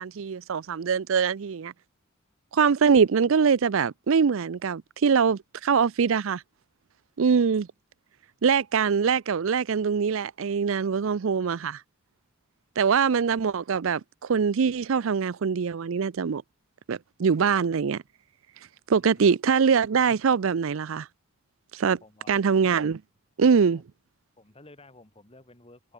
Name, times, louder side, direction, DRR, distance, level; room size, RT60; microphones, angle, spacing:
voice 1, 0.0-1.7 2.5-6.4 7.2-7.7 8.4-11.8 12.8-16.4 16.9-18.0 18.9-21.1 21.7-22.0 22.3-23.0 23.4-23.8, right 6 dB, 65° right, 0.5 m, -23 dB
voice 2, 19.0-19.3 22.0-22.4 23.7-23.8 24.4-25.9, left 2 dB, 25° left, 3.0 m, -53 dB
head